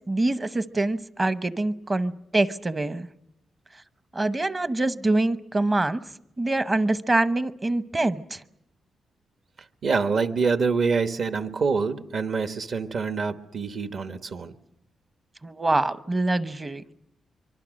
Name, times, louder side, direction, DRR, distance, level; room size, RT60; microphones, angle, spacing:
voice 1, 0.1-3.1 4.1-6.0 6.4-8.4 15.4-16.8, right 2 dB, 20° right, 0.8 m, -25 dB
voice 2, 9.8-14.5, right 4 dB, 55° right, 1.2 m, -26 dB
24.5 x 24.0 x 6.4 m
wide cardioid pair, 130°, 0 cm